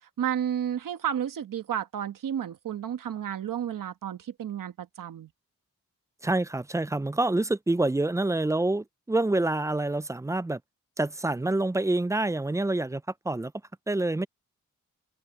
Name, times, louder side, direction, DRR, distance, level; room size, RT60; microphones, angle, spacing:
voice 1, 0.0-5.3, right 9 dB, 90° right, 1.3 m, -32 dB
voice 2, 6.2-10.6 11.0-13.5 13.9-14.3, right 2 dB, 10° right, 0.4 m, -27 dB
cardioid pair, 65°, 32 cm